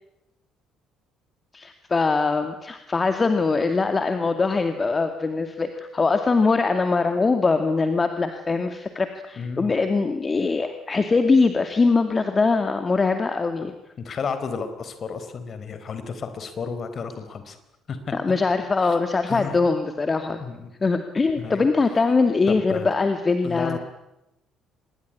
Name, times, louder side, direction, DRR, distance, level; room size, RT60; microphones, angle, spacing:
voice 1, 1.5-13.7 18.1-20.4 20.8-23.8, left 4 dB, 25° left, 8 dB, 2.4 m, -22 dB
voice 2, 9.4-9.7 14.0-17.6 17.9-18.1 18.8-19.0 19.3-19.6 20.4-20.7 21.4-21.7 22.5-22.9 23.4-23.8, left 5 dB, 40° left, 10 dB, 4.4 m, -32 dB
25.5 x 21.5 x 10.0 m, 0.89 s
figure-of-eight pair, 50°, 0 cm